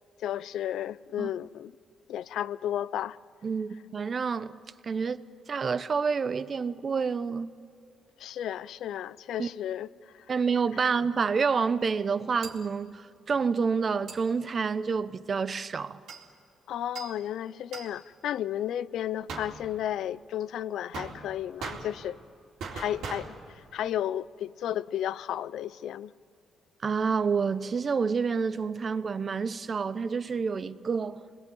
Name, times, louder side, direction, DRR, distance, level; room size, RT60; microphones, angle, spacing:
voice 1, 0.2-1.7 2.1-3.2 8.2-9.9 10.1-10.3 10.7-10.9 16.7-22.2 22.7-26.1, left 11 dB, 75° left, 0.6 m, -33 dB
voice 2, 3.4-4.6 4.8-7.5 9.4-9.5 10.3-16.0 26.8-31.2, right 5 dB, 40° right, 1.0 m, -28 dB
sound 1, 12.4-12.7 14.1-14.2 16.1-16.3 16.9-17.3 17.7-18.0 19.3-19.9 20.9-22.3 22.6-23.6, right 5 dB, 80° right, 4.0 m, -40 dB
29.0 x 21.5 x 8.8 m
cardioid pair, 90°, 0 cm